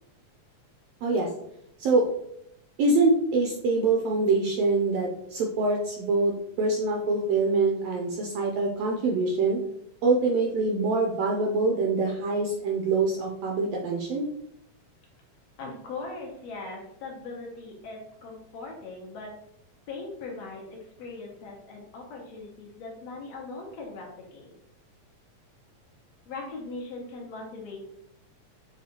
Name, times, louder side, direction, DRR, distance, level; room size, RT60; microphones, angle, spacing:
voice 1, 2.8-6.3 6.6-9.6 10.0-14.2, right 3 dB, 80° right, 0 dB, 1.5 m, -24 dB
voice 2, 15.6-19.3 19.9-24.5 26.3-27.8, left 3 dB, 70° left, -1 dB, 1.8 m, -40 dB
6.9 x 2.4 x 2.8 m, 0.75 s
omnidirectional pair, 3.3 m